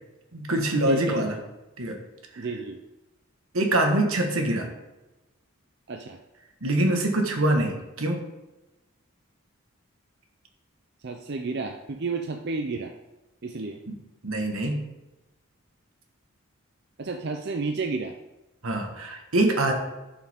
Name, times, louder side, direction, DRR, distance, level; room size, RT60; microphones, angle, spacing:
voice 1, 0.3-1.4 1.8-2.0 2.3-2.5 3.5-4.7 6.6-8.2 13.9-14.0 14.2-14.8 18.6-19.7, right 1 dB, 80° right, 4 dB, 1.4 m, -24 dB
voice 2, 0.8-1.3 2.4-2.8 5.9-6.2 11.0-12.9 13.4-13.8 17.0-18.1, right 3 dB, 50° right, 3 dB, 0.5 m, -31 dB
11.5 x 5.8 x 3.6 m, 1.0 s
head